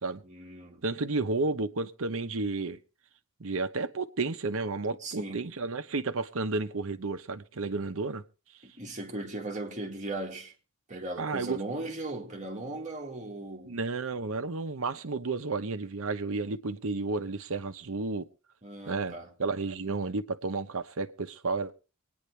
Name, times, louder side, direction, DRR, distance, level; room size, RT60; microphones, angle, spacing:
voice 1, 0.2-0.8 5.0-5.5 8.6-10.5 10.9-13.8 18.6-19.3, right 2 dB, 35° right, 2.1 m, -38 dB
voice 2, 0.8-2.8 3.4-8.2 11.2-11.6 13.6-18.3 18.9-21.7, right 3 dB, 70° right, 0.9 m, -32 dB
24.5 x 9.6 x 3.3 m
head